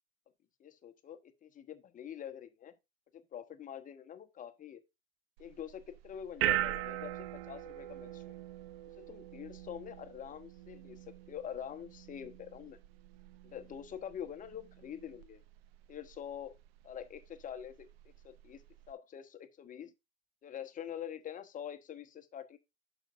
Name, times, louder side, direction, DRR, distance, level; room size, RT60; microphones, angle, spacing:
voice 1, 0.6-2.7 3.1-4.8 5.4-8.4 9.0-12.8 13.4-15.4 15.9-16.6 16.8-17.9 18.2-18.6 18.9-19.9 20.4-22.6, left 9 dB, 25° left, 1.0 m, -45 dB
sound 1, 5.4-18.9, right 14 dB, 60° right, 0.6 m, -41 dB
8.8 x 5.9 x 2.5 m
hypercardioid pair, 95°, 33 cm